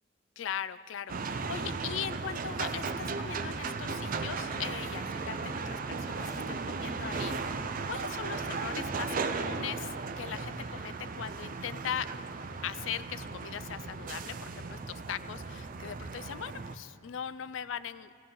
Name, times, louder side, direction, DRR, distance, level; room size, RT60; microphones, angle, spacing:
voice 1, 0.4-12.1 12.6-18.1, left 9 dB, 70° left, 15 dB, 0.4 m, -40 dB
sound 1, 1.1-16.8, right 4 dB, 45° right, 0.5 m, -36 dB
Zipper (clothing), 2.3-3.0 3.6-4.2 4.5-5.2 5.7-6.6 7.0-7.9, equal, ahead, 1.3 m, -53 dB
sound 2, 3.0-6.3 6.6-7.2 8.3-9.6 10.5-11.1, left 1 dB, 85° left, 1.7 m, -51 dB
17.0 x 15.0 x 3.9 m, 2.4 s
head